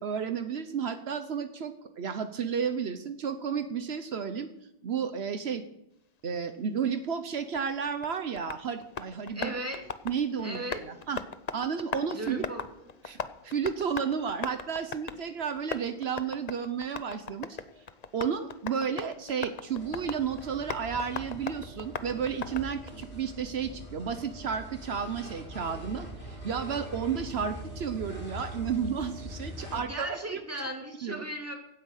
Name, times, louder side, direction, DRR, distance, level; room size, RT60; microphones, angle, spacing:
voice 1, 0.0-4.5 4.8-5.6 6.2-9.5 10.0-11.2 11.5-12.5 13.1-13.2 13.4-17.6 18.1-30.4 31.0-31.2, right 7 dB, 75° right, 9 dB, 1.2 m, -32 dB
Tap, 7.5-23.0, left 6 dB, 45° left, 0.8 m, -40 dB
voice 2, 9.3-9.9 10.4-11.1 12.1-12.7 29.6-31.5, right 1 dB, 15° right, 1 dB, 2.5 m, -37 dB
sound 1, 19.7-29.8, equal, 75° left, 5.4 m, -43 dB
16.5 x 9.4 x 6.5 m, 0.84 s
omnidirectional pair, 1.1 m